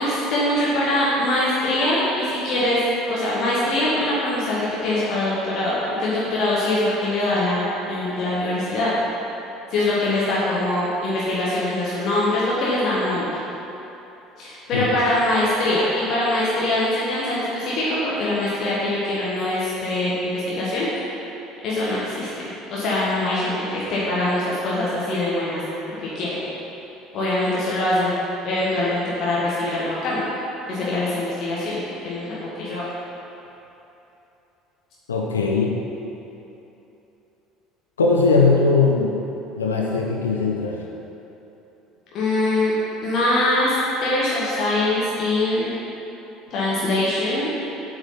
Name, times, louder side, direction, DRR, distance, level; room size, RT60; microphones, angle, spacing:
voice 1, 0.0-2.8 3.1-8.9 9.7-13.3 14.4-20.9 21.6-25.6 26.0-26.3 27.1-28.1 28.4-30.3 30.7-32.8 42.1-42.7 43.0-43.7 44.0-45.7 46.5-47.5, left 1 dB, 50° left, -7 dB, 1.5 m, -23 dB
voice 2, 35.1-35.7 38.0-39.2 39.6-40.8, left 4 dB, 75° left, -1 dB, 0.6 m, -19 dB
8.3 x 4.9 x 5.7 m, 3.0 s
figure-of-eight pair, 60°, 0 cm